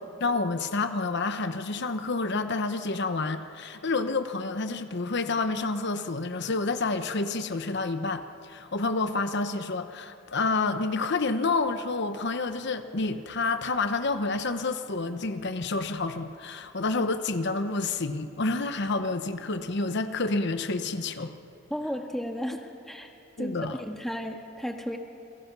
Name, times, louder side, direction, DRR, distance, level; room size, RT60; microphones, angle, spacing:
voice 1, 0.2-21.3 23.4-23.8, left 3 dB, 60° left, 9 dB, 1.0 m, -29 dB
voice 2, 21.7-23.1 23.4-25.0, equal, ahead, 3 dB, 1.6 m, -34 dB
29.5 x 22.5 x 6.1 m, 2.7 s
head